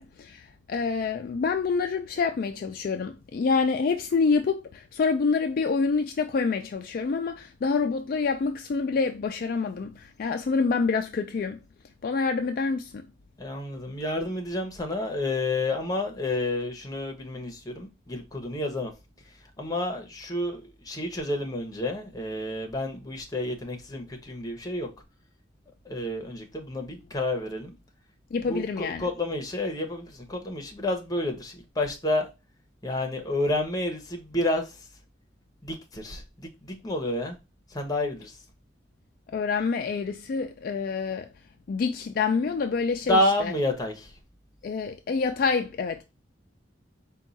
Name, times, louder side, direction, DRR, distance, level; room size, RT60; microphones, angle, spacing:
voice 1, 0.0-11.6 12.0-12.9 28.3-29.1 39.3-41.3 41.7-43.5 44.6-46.0, left 4 dB, 50° left, 0.3 m, -27 dB
voice 2, 13.4-18.9 19.6-24.9 25.9-27.7 28.5-32.3 32.8-34.6 35.6-36.2 36.6-37.4 37.7-38.3 43.1-44.1, left 1 dB, 20° left, 0.9 m, -29 dB
4.5 x 2.3 x 4.0 m
head